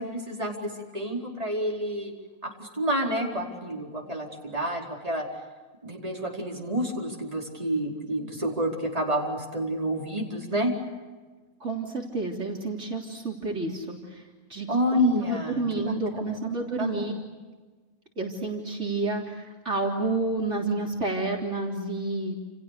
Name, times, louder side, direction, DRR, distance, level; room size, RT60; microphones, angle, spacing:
voice 1, 0.0-2.1 2.4-5.2 5.8-10.7 14.7-16.0 16.3-16.4 16.8-17.0, equal, 25° right, -1 dB, 4.7 m, -29 dB
voice 2, 11.6-14.2 14.5-15.0 15.3-17.2 18.2-22.4, right 3 dB, 55° right, 0 dB, 4.0 m, -30 dB
29.5 x 29.5 x 6.7 m, 1.3 s
omnidirectional pair, 1.4 m